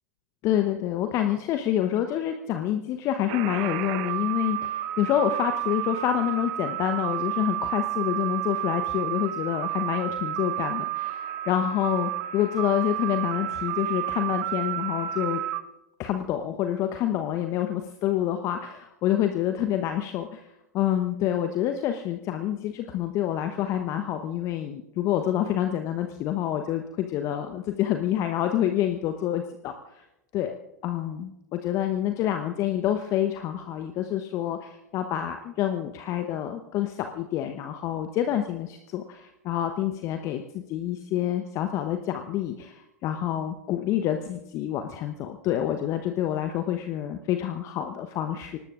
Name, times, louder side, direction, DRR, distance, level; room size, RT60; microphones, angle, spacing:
voice 1, 0.4-15.4 16.0-20.5 20.7-30.0 30.3-30.6 30.8-48.6, left 11 dB, 35° left, 6 dB, 1.0 m, -27 dB
sound 1, 3.3-15.6, right 14 dB, 50° right, 1.0 m, -31 dB
25.0 x 19.0 x 2.5 m, 0.92 s
figure-of-eight pair, 95°, 9 cm